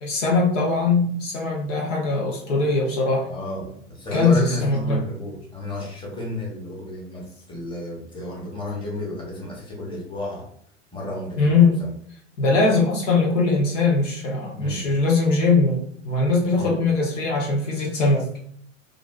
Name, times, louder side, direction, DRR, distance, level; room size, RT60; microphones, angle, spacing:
voice 1, 0.0-3.3 4.1-5.0 11.4-11.8 12.4-18.3, left 3 dB, 70° left, -2 dB, 0.8 m, -21 dB
voice 2, 3.3-3.7 3.9-10.4 10.9-11.5 14.5-14.8 16.6-16.8, left 1 dB, 15° left, -4 dB, 1.2 m, -31 dB
3.1 x 2.5 x 2.4 m, 0.62 s
figure-of-eight pair, 80°, 38 cm